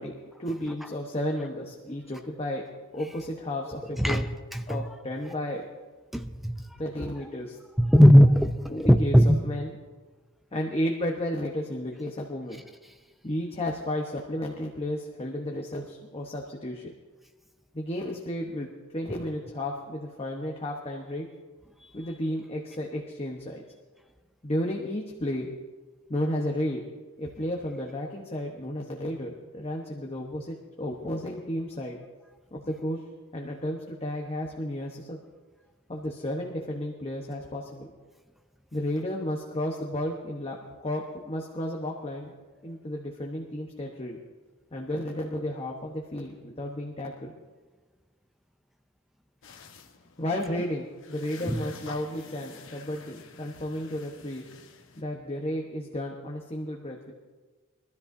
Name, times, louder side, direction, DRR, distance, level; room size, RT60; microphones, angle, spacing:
voice 1, 0.0-2.6 2.9-4.2 4.7-5.7 6.8-7.6 8.7-9.1 9.4-9.7 10.5-12.6 13.2-16.9 17.7-18.7 18.9-21.3 21.9-23.6 24.4-25.5 26.1-26.8 27.2-32.0 32.5-33.0 33.3-35.2 35.9-37.9 38.7-42.3 42.6-44.2 44.7-47.3 50.2-54.4 55.0-57.1, left 1 dB, 25° left, 1.0 m, -33 dB
voice 2, 4.5-4.9 6.1-6.6 7.8-9.4 50.5-50.6 51.4-51.6, equal, ahead, 0.5 m, -19 dB
sound 1, 49.4-55.0, left 4 dB, 60° left, 1.1 m, -49 dB
23.5 x 13.0 x 2.7 m
head